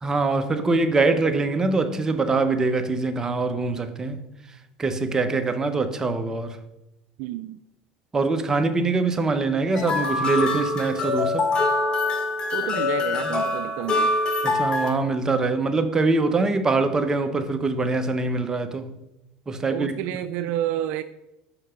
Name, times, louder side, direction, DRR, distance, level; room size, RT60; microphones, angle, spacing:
voice 1, 0.0-4.2 4.8-6.6 8.1-11.5 14.4-18.9 19.5-20.0, right 3 dB, 20° right, 0.9 m, -23 dB
voice 2, 7.2-7.6 12.5-14.2 19.7-21.0, right 12 dB, 65° right, 0.4 m, -29 dB
sound 1, 9.7-14.9, left 3 dB, 30° left, 1.1 m, -24 dB
5.8 x 5.5 x 6.6 m
supercardioid pair, 100°, 3 cm